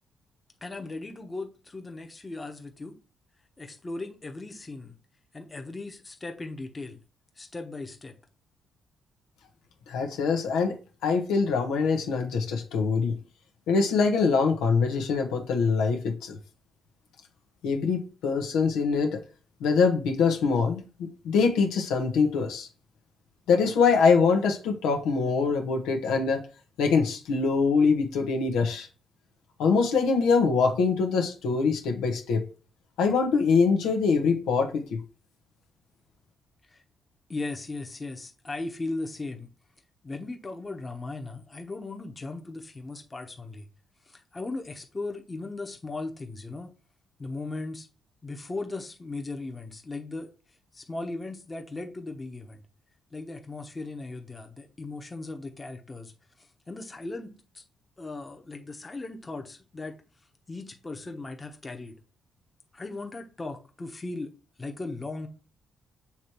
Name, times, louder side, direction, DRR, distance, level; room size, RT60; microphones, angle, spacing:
voice 1, 0.6-3.0 3.6-4.9 5.3-7.0 7.4-8.2 36.7-36.8 37.3-39.5 40.0-43.7 44.1-46.7 47.2-47.9 48.2-50.3 50.7-52.6 53.1-56.1 56.4-57.6 58.0-60.0 60.5-62.0 62.7-64.3 64.6-65.3, left 3 dB, 25° left, 1.1 m, -37 dB
voice 2, 9.9-10.8 11.0-13.1 13.7-16.4 17.6-19.2 19.6-22.7 23.5-26.4 26.8-28.9 29.6-32.4 33.0-35.0, left 5 dB, 90° left, 1.1 m, -24 dB
7.1 x 3.2 x 4.5 m
cardioid pair, 90°, 0 cm